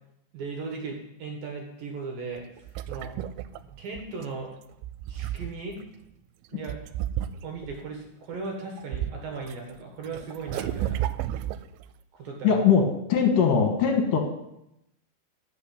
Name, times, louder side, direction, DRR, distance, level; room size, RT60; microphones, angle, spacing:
voice 1, 0.3-3.1 3.8-4.5 5.1-5.8 6.5-6.8 7.4-11.0 12.1-12.7, right 4 dB, 60° right, 1 dB, 2.9 m, -37 dB
sound 1, 2.4-4.3 4.7-5.8 6.7-7.8 8.3-9.6 9.8-11.9, right 12 dB, 90° right, 2.8 m, -33 dB
voice 2, 12.4-14.2, left 6 dB, 65° left, 4 dB, 2.6 m, -21 dB
13.5 x 5.7 x 8.6 m, 0.84 s
omnidirectional pair, 5.0 m